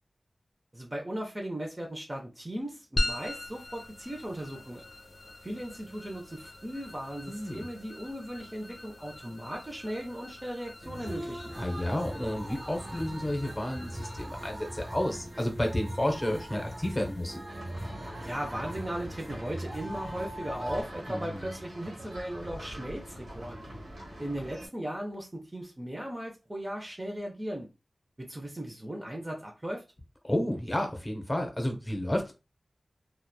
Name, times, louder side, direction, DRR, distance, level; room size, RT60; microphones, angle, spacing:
voice 1, 0.7-4.8 5.4-11.5 18.3-23.7 24.2-27.7 28.2-29.8, right 1 dB, 25° right, 0.5 m, -37 dB
sound 1, 3.0-17.6, left 1 dB, 65° left, 0.4 m, -41 dB
voice 2, 7.3-7.7 11.6-17.4 21.1-21.4 30.2-32.3, left 1 dB, 20° left, 0.7 m, -31 dB
sound 2, 10.8-20.8, equal, 50° right, 1.1 m, -41 dB
sound 3, 17.5-24.7, right 1 dB, 80° right, 1.2 m, -44 dB
2.8 x 2.1 x 2.2 m
wide cardioid pair, 65°, 0 cm